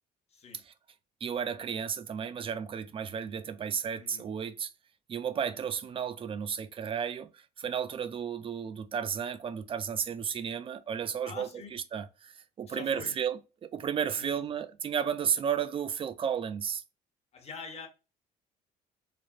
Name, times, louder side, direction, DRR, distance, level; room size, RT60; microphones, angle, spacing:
voice 1, 0.3-0.6 3.9-4.3 11.2-11.7 12.7-13.1 14.2-14.3 17.3-17.9, left 5 dB, 40° left, 0.9 m, -45 dB
voice 2, 1.2-4.7 5.1-12.3 12.6-16.8, right 7 dB, 30° right, 0.4 m, -33 dB
3.3 x 2.0 x 2.4 m
cardioid pair, 110°, 17 cm